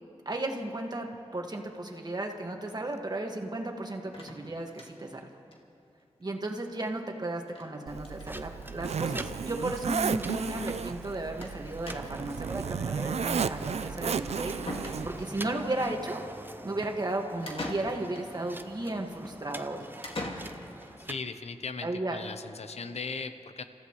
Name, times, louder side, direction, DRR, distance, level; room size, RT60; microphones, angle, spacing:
voice 1, 0.2-5.3 6.2-16.2 16.6-20.0 21.8-22.2, right 2 dB, 35° right, 2 dB, 1.7 m, -34 dB
sound 1, 4.1-5.2 5.5-5.6 5.9-6.0 6.2-6.3 7.5-7.7 8.0-8.3 9.2-9.3 9.6-9.7 11.4-11.6 11.9-12.3 14.1-14.2 14.7-15.4 17.5-18.3 20.0-20.9, left 2 dB, 55° left, 2.0 m, -40 dB
Zipper (clothing), 7.9-15.2, right 6 dB, 70° right, 0.4 m, -33 dB
sound 2, 8.2-21.2, right 1 dB, 20° right, 0.7 m, -45 dB
voice 2, 21.0-23.6, left 4 dB, 70° left, 10 dB, 0.8 m, -38 dB
28.0 x 14.5 x 3.1 m, 2.6 s
cardioid pair, 55°, 11 cm